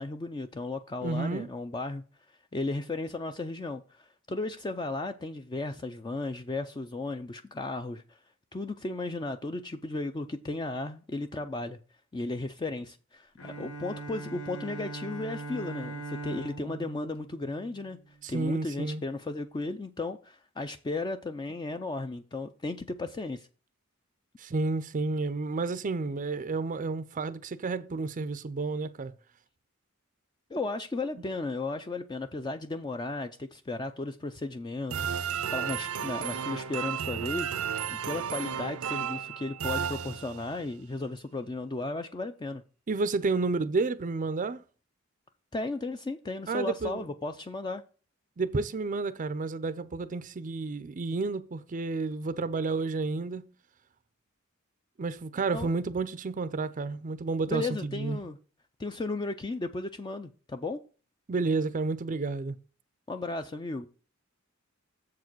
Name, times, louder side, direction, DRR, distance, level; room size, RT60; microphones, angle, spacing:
voice 1, 0.0-2.0 2.5-8.2 8.5-11.8 12.1-23.5 30.5-37.5 37.9-42.6 45.5-47.8 55.5-55.7 57.5-58.4 58.8-60.8 63.1-63.9, left 2 dB, 20° left, 0.4 m, -35 dB
voice 2, 1.0-1.5 18.2-19.0 24.4-29.1 31.2-31.3 42.9-44.6 46.5-47.1 48.4-53.5 55.0-58.2 61.3-62.6, right 3 dB, 40° right, 0.5 m, -31 dB
Bowed string instrument, 13.4-18.3, right 3 dB, 85° left, 1.6 m, -41 dB
sound 1, 34.9-40.6, right 8 dB, 85° right, 0.6 m, -33 dB
7.2 x 4.8 x 6.0 m
head